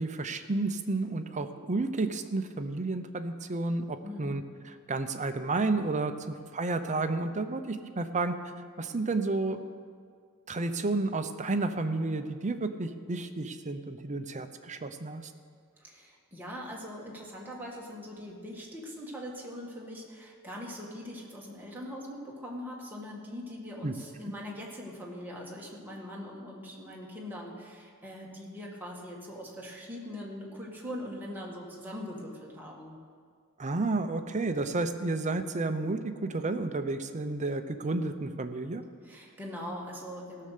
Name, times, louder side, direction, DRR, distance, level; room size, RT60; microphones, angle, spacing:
voice 1, 0.0-4.4 4.9-8.4 8.8-9.6 10.5-15.3 23.8-23.9 33.6-38.8, right 3 dB, 35° right, 8 dB, 0.7 m, -31 dB
voice 2, 4.0-4.4 15.8-33.0 39.0-40.5, left 1 dB, 10° right, -3 dB, 1.9 m, -42 dB
16.0 x 6.6 x 6.7 m, 2.1 s
head